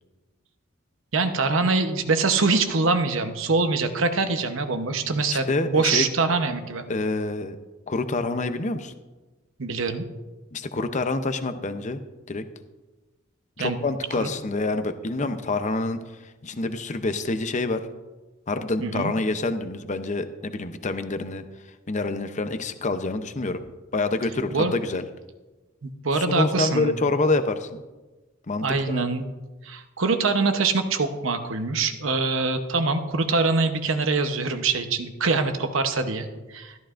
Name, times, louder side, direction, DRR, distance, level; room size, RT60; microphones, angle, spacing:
voice 1, 1.1-6.8 9.6-10.1 13.6-13.8 14.1-14.3 18.8-19.1 24.5-24.7 25.8-27.0 28.6-29.3 29.6-36.7, right 3 dB, 75° right, 7 dB, 0.9 m, -24 dB
voice 2, 5.5-6.1 6.9-7.6 7.9-8.9 10.5-12.0 12.3-12.4 13.6-16.0 16.4-17.8 18.5-21.4 21.9-23.6 23.9-25.0 26.1-27.8 28.5-29.1, left 2 dB, 35° left, 9 dB, 0.7 m, -27 dB
13.5 x 12.5 x 2.5 m, 1.2 s
head